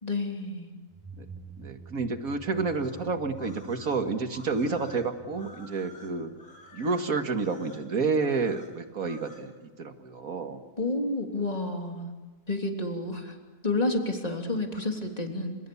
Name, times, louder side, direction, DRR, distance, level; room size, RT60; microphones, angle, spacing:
voice 1, 0.0-0.7 10.8-12.1 12.5-13.4 13.6-15.6, left 2 dB, 25° left, 2 dB, 3.4 m, -30 dB
sound 1, 0.9-7.5, right 6 dB, 10° right, 1.1 m, -49 dB
voice 2, 1.6-6.3 6.7-10.6, right 4 dB, 65° right, 6 dB, 2.3 m, -30 dB
sound 2, 2.6-9.5, left 2 dB, 65° left, 5.3 m, -52 dB
29.5 x 27.5 x 7.2 m, 1.2 s
omnidirectional pair, 1.6 m